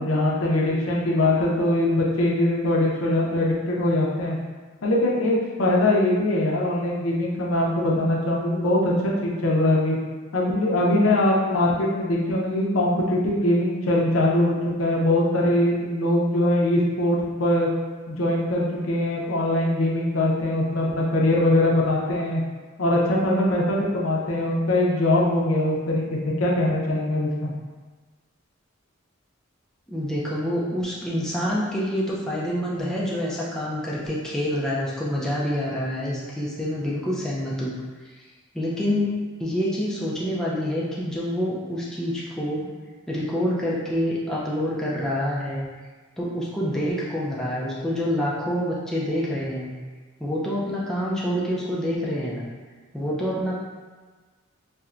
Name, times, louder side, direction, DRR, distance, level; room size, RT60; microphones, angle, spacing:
voice 1, 0.0-4.4 4.8-10.0 10.3-17.7 18.1-22.4 22.8-27.5, left 1 dB, 70° left, -3 dB, 0.6 m, -22 dB
voice 2, 29.9-37.7 38.5-39.1 39.4-42.7 43.1-45.7 46.2-49.7 50.2-52.5 52.9-53.6, equal, 5° left, -7 dB, 0.4 m, -27 dB
4.3 x 2.1 x 2.4 m, 1.4 s
head